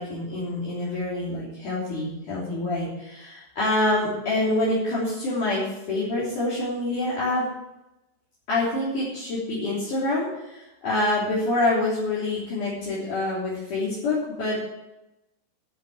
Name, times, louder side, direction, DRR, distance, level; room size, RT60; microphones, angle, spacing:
voice 1, 0.0-7.4 8.5-14.6, left 2 dB, 50° left, -9 dB, 4.7 m, -26 dB
12.5 x 7.3 x 7.4 m, 0.92 s
omnidirectional pair, 4.8 m